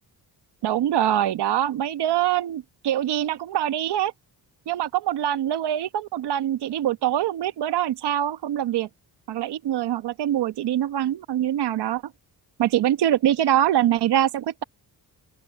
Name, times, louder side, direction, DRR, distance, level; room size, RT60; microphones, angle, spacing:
voice 1, 0.6-4.1 4.7-8.9 9.3-12.0 12.6-14.6, right 11 dB, 85° right, 1.2 m, -24 dB
open air
cardioid pair, 110°, 39 cm